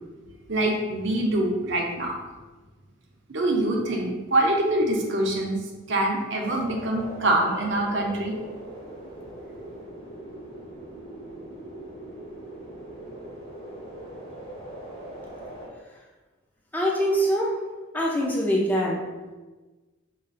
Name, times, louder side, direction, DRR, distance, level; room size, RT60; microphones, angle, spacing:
voice 1, 0.5-2.1 3.3-5.6 5.9-8.3, right 1 dB, 55° right, 0 dB, 0.6 m, -24 dB
sound 1, 6.4-15.7, right 1 dB, 60° left, 1.3 m, -41 dB
voice 2, 16.7-17.5 17.9-19.0, equal, 10° left, -4 dB, 0.4 m, -23 dB
5.5 x 2.4 x 2.5 m, 1.2 s
head